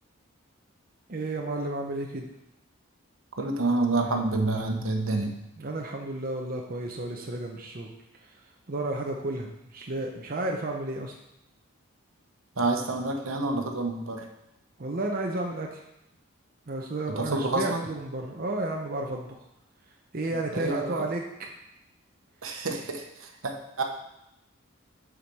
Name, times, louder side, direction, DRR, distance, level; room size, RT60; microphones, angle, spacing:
voice 1, 1.1-2.3 5.6-7.9 8.2-8.3 8.7-11.1 14.8-15.8 16.7-19.4 20.1-21.5, right 2 dB, 45° right, 1 dB, 0.7 m, -32 dB
voice 2, 3.4-5.4 12.6-14.2 17.1-17.9 20.5-21.0 22.4-23.8, right 2 dB, 75° right, 3 dB, 1.1 m, -28 dB
7.4 x 5.0 x 5.4 m, 0.85 s
head